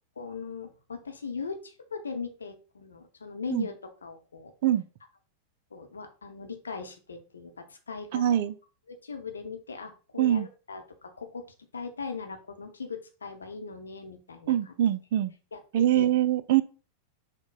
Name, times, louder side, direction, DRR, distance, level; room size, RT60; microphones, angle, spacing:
voice 1, 0.2-4.5 5.7-8.2 8.9-11.5 11.7-14.7 15.5-16.1, left 5 dB, 75° left, 5 dB, 0.8 m, -39 dB
voice 2, 8.1-8.5 10.2-10.5 14.5-15.3 15.7-16.6, right 12 dB, 50° right, 13 dB, 0.4 m, -23 dB
6.0 x 2.2 x 3.9 m, 0.35 s
figure-of-eight pair, 90°, 0 cm